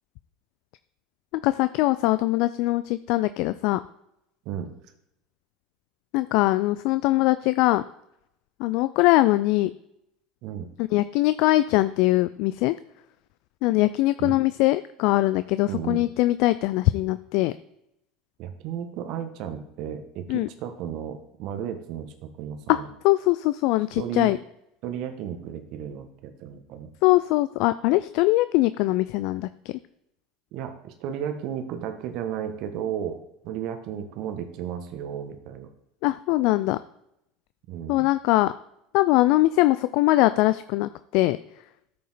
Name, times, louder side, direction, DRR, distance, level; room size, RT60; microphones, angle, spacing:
voice 1, 1.4-3.8 6.1-7.8 8.6-9.7 10.8-12.7 13.6-17.5 20.3-20.5 22.7-22.8 23.0-24.4 27.0-29.5 36.0-36.8 37.9-38.5 38.9-41.4, left 18 dB, 60° left, 13 dB, 0.3 m, -22 dB
voice 2, 15.7-16.0 18.4-22.9 23.9-24.4 24.8-26.9 30.5-35.7 37.7-38.1, right 9 dB, 55° right, 7 dB, 1.4 m, -34 dB
13.5 x 5.4 x 4.1 m, 0.80 s
hypercardioid pair, 75°, 0 cm